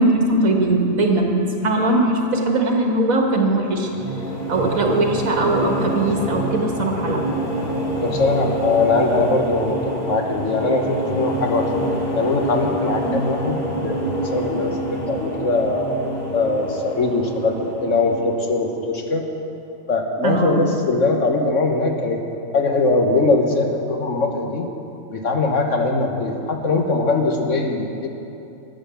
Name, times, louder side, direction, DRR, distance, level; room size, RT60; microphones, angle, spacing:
voice 1, 0.0-1.3 1.6-3.9 4.5-7.2 13.0-13.2 20.2-20.6, right 2 dB, 85° right, 1 dB, 2.1 m, -20 dB
sound 1, 3.6-18.9, equal, 30° left, 1.6 m, -27 dB
voice 2, 8.0-11.7 12.1-15.9 16.3-19.2 19.9-22.2 22.5-24.7 25.1-28.1, left 3 dB, 65° left, 2 dB, 1.6 m, -21 dB
14.5 x 9.8 x 7.0 m, 2.8 s
omnidirectional pair, 1.4 m